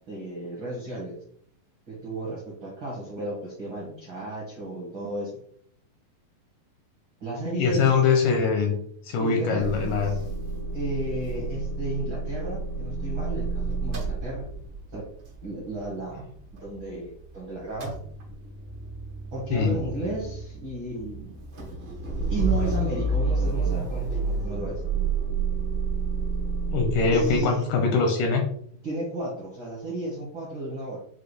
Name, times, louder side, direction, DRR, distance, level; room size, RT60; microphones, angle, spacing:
voice 1, 0.1-1.1 1.9-5.3 7.2-7.9 9.2-10.2 10.7-14.5 14.9-15.1 15.4-16.3 16.6-17.9 19.3-21.4 22.3-24.8 27.1-27.7 28.8-31.0, right 2 dB, 65° right, -5 dB, 1.2 m, -33 dB
voice 2, 7.5-8.7 9.0-10.2 19.5-19.7 26.7-28.4, left 5 dB, 80° left, 3 dB, 2.0 m, -23 dB
Motor vehicle (road) / Engine starting / Idling, 9.6-17.3 17.6-27.4, right 3 dB, 85° right, 1.0 m, -30 dB
6.6 x 2.3 x 3.1 m, 0.63 s
omnidirectional pair, 4.1 m